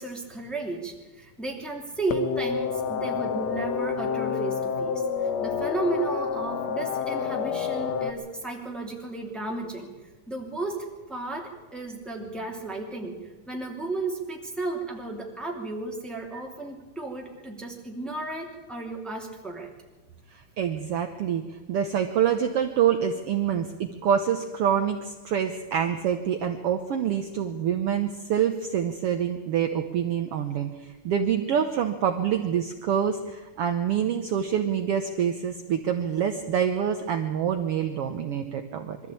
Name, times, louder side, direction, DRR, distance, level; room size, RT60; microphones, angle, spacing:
voice 1, 0.0-9.9 10.3-19.7, right 2 dB, ahead, -1 dB, 2.2 m, -34 dB
sound 1, 2.1-8.1, left 7 dB, 65° left, 1.9 m, -28 dB
voice 2, 20.3-39.0, right 8 dB, 75° right, 5 dB, 1.3 m, -26 dB
22.5 x 13.5 x 8.5 m, 1.2 s
omnidirectional pair, 3.8 m